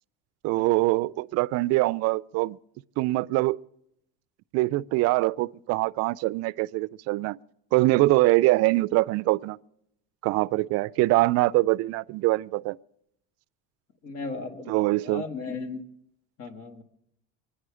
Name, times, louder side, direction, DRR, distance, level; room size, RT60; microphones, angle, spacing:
voice 1, 0.4-2.6 3.0-3.6 4.5-7.4 7.7-9.6 10.2-12.8 14.7-15.2, right 20 dB, 55° right, 0.5 m, -23 dB
voice 2, 14.0-15.8 16.4-16.8, left 4 dB, 55° left, 2.0 m, -36 dB
24.5 x 10.0 x 4.9 m
cardioid pair, 135°, 29 cm